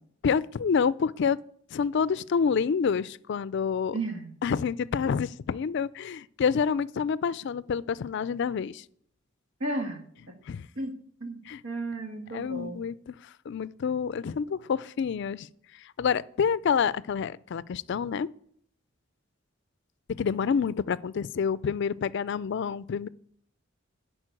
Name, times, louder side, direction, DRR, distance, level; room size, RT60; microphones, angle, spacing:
voice 1, 0.2-1.4 1.7-3.9 4.4-8.8 10.5-10.7 11.5-11.6 12.3-13.1 13.5-15.5 16.0-18.3 20.2-23.1, left 6 dB, 60° left, 0.3 m, -28 dB
voice 2, 3.9-4.3 9.6-10.0 10.8-10.9 11.2-12.8, right 2 dB, 85° right, 1.7 m, -33 dB
11.0 x 4.4 x 7.6 m
head